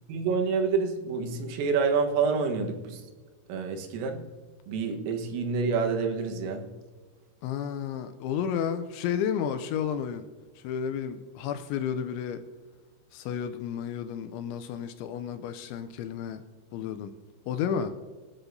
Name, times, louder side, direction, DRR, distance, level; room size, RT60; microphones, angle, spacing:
voice 1, 0.1-3.0 3.5-4.3 4.7-6.7, right 5 dB, 90° right, 4.0 m, -28 dB
voice 2, 7.4-10.3 10.6-12.4 13.1-16.4 16.7-17.1 17.5-17.9, left 8 dB, 80° left, 2.8 m, -32 dB
26.0 x 9.9 x 2.7 m
omnidirectional pair, 5.7 m